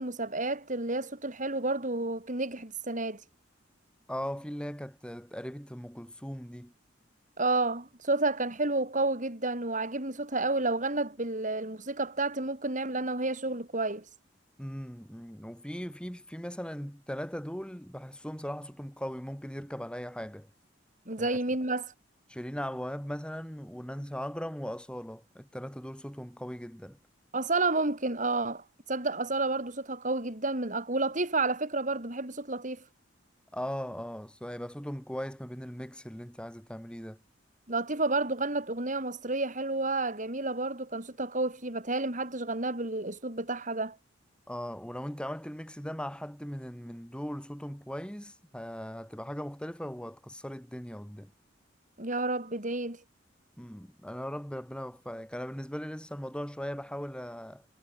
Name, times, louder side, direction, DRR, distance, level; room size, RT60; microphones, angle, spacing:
voice 1, 0.0-3.2 7.4-14.0 21.1-21.9 27.3-28.6 28.9-32.8 37.7-44.0 52.0-53.0, right 2 dB, 40° right, 4.9 m, -30 dB
voice 2, 4.1-6.7 14.6-20.5 21.1-21.4 22.3-27.0 33.5-37.2 44.5-51.3 53.6-57.7, equal, 5° left, 4.1 m, -39 dB
head